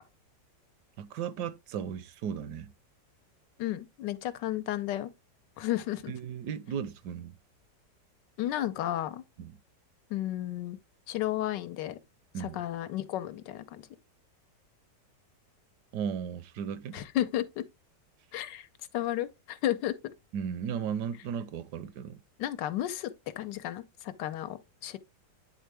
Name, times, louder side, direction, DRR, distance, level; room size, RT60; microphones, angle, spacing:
voice 1, 1.0-2.7 6.1-7.3 9.4-9.6 12.3-12.6 15.9-17.0 20.3-22.2, right 8 dB, 75° right, 1.2 m, -36 dB
voice 2, 3.6-5.1 5.6-6.1 8.4-9.2 10.1-10.8 11.1-12.0 12.4-13.9 16.9-17.6 18.3-18.7 18.9-20.1 22.4-23.1 23.4-25.0, left 13 dB, 85° left, 1.3 m, -33 dB
9.3 x 3.6 x 3.3 m
omnidirectional pair, 1.9 m